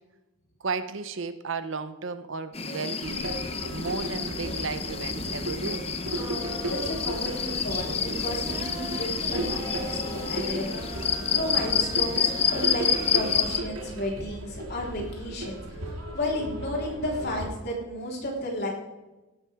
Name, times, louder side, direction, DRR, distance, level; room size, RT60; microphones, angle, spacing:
voice 1, 0.6-3.3 3.7-5.9 7.8-8.1, right 4 dB, 60° right, 12 dB, 0.7 m, -34 dB
sound 1, 2.5-13.6, left 6 dB, 30° left, 0.8 m, -29 dB
sound 2, 3.0-17.5, right 1 dB, 85° right, 2.4 m, -36 dB
sound 3, 6.1-13.1, equal, 15° right, 1.7 m, -41 dB
voice 2, 6.7-18.7, left 1 dB, 50° left, -2 dB, 3.9 m, -33 dB
17.0 x 11.5 x 3.6 m, 1.1 s
head